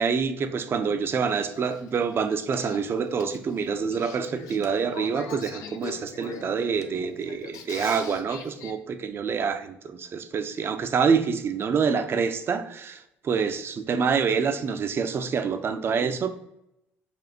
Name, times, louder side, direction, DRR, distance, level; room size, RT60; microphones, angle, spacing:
voice 1, 0.0-16.3, right 6 dB, 40° right, 9 dB, 0.4 m, -26 dB
Male speech man speaking / Female speech woman speaking / Conversation, 1.1-8.7, left 7 dB, 65° left, 0.4 m, -43 dB
4.2 x 2.4 x 2.8 m, 0.84 s
hypercardioid pair, 70°, 6 cm